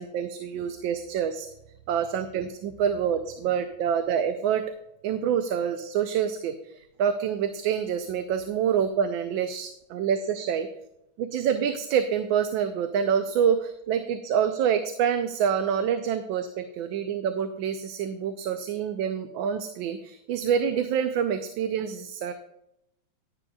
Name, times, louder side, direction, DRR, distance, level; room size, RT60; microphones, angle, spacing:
voice 1, 0.0-1.5 1.9-4.6 5.0-10.7 11.2-22.3, right 8 dB, 80° right, 8 dB, 1.4 m, -27 dB
11.0 x 9.8 x 2.3 m, 0.84 s
omnidirectional pair, 2.1 m